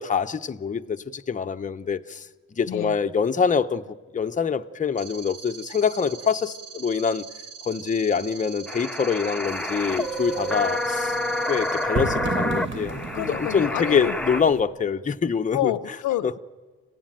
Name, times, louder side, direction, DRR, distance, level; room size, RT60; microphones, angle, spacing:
voice 1, 0.0-2.3 2.6-3.8 4.1-7.2 7.7-11.1 11.5-15.7 16.2-16.3, left 6 dB, 25° left, 0.8 m, -25 dB
sound 1, 5.0-11.8, right 6 dB, 70° right, 3.4 m, -42 dB
sound 2, 8.7-14.4, left 1 dB, 5° left, 1.1 m, -29 dB
sound 3, 9.5-14.6, right 4 dB, 40° right, 1.5 m, -34 dB
voice 2, 13.1-14.2 15.5-16.4, left 13 dB, 85° left, 0.9 m, -28 dB
26.5 x 16.0 x 9.1 m
cardioid pair, 90°, 30 cm